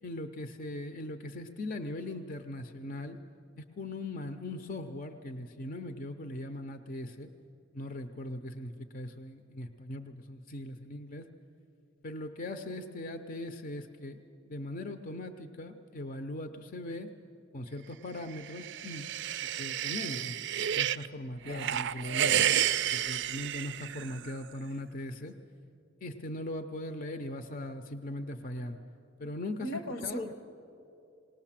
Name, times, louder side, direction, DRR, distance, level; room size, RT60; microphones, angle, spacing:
voice 1, 0.0-3.2 3.6-7.3 7.7-11.3 12.0-14.2 14.5-17.1 17.5-19.1 19.4-20.4 20.7-22.6 22.9-25.4 26.0-28.8 29.2-29.7 30.0-30.3, left 1 dB, 40° left, 8 dB, 0.6 m, -40 dB
sound 1, 18.4-21.1 21.5-24.3, right 10 dB, 60° right, 0.4 m, -31 dB
voice 2, 21.4-21.8 29.6-30.3, left 1 dB, 75° left, 9 dB, 1.1 m, -37 dB
19.5 x 19.0 x 7.4 m, 2.7 s
head